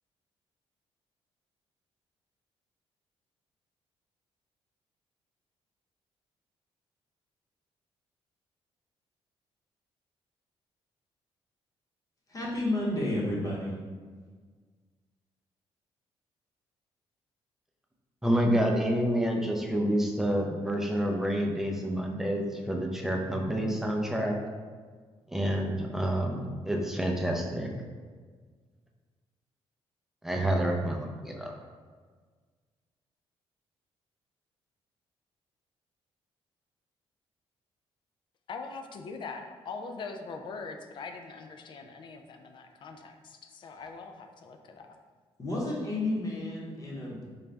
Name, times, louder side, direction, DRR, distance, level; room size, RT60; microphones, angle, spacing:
voice 1, 12.3-13.8 45.4-47.2, left 1 dB, 35° left, -5 dB, 0.9 m, -31 dB
voice 2, 18.2-24.3 25.3-27.7 30.2-31.5, equal, 5° right, 0 dB, 0.5 m, -28 dB
voice 3, 38.5-44.9, left 4 dB, 50° left, 5 dB, 0.4 m, -42 dB
3.9 x 2.2 x 3.3 m, 1.5 s
cardioid pair, 110°, 10 cm